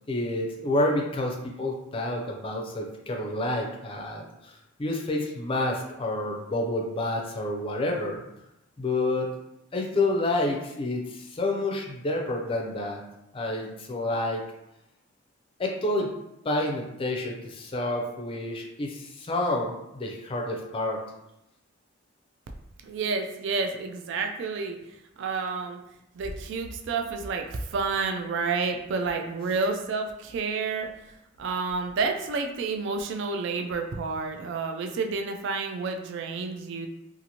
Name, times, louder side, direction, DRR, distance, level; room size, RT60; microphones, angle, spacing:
voice 1, 0.1-8.2 8.8-9.3 9.7-13.0 13.3-14.4 15.6-16.1 16.4-21.0, left 2 dB, 25° left, 1 dB, 0.4 m, -29 dB
voice 2, 22.8-24.8 25.2-25.8 26.1-30.9 31.4-36.9, right 4 dB, 60° right, 4 dB, 0.3 m, -30 dB
2.7 x 2.5 x 2.8 m, 0.86 s
head